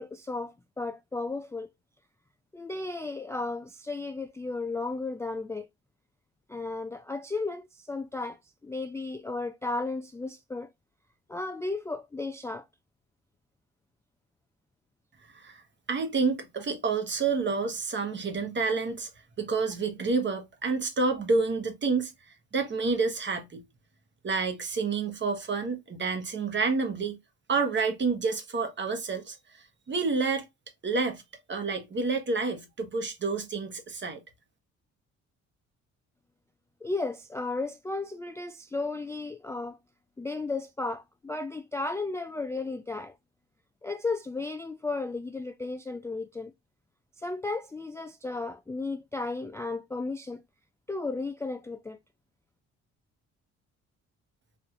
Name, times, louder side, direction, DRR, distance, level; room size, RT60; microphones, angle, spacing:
voice 1, 0.0-1.7 2.5-5.7 6.5-8.4 8.6-10.7 11.3-12.7 36.8-39.8 40.2-43.2 43.8-46.5 47.2-50.4 50.9-52.0, left 3 dB, 10° left, 0.3 m, -34 dB
voice 2, 15.2-15.6 15.9-19.1 19.4-22.1 22.5-23.6 24.2-27.2 27.5-29.4 29.9-30.5 30.8-31.2 31.5-34.2, right 4 dB, 40° right, 1.1 m, -29 dB
4.4 x 2.5 x 2.4 m
cardioid pair, 90°, 30 cm